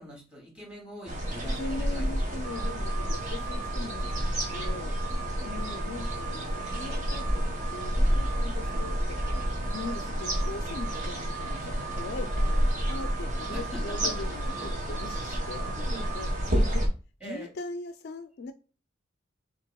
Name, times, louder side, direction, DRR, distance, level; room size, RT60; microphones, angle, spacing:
voice 1, 0.0-2.1 13.5-14.3 15.9-16.1 16.5-16.8 17.2-17.5, right 1 dB, 5° right, 2.3 m, -43 dB
sound 1, 1.1-16.9, equal, 40° right, 1.2 m, -30 dB
voice 2, 1.4-5.0 5.4-7.4 7.7-16.3 17.2-18.5, left 3 dB, 50° left, 0.3 m, -41 dB
Alarm, 2.4-16.5, right 7 dB, 80° right, 1.4 m, -42 dB
5.4 x 3.7 x 2.2 m
head